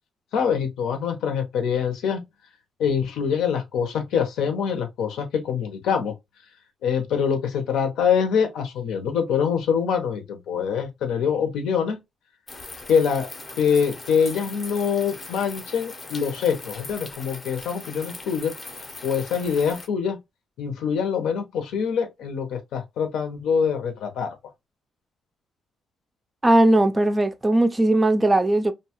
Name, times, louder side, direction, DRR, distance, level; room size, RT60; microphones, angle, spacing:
voice 1, 0.3-2.2 2.8-6.1 6.8-12.0 12.9-13.3 13.6-18.5 19.0-20.2 20.6-24.3, left 7 dB, 90° left, 0.7 m, -24 dB
sound 1, 12.5-19.9, left 3 dB, 30° left, 0.6 m, -40 dB
voice 2, 26.4-28.7, right 1 dB, 15° right, 0.4 m, -18 dB
2.7 x 2.3 x 2.8 m
cardioid pair, 110°, 0 cm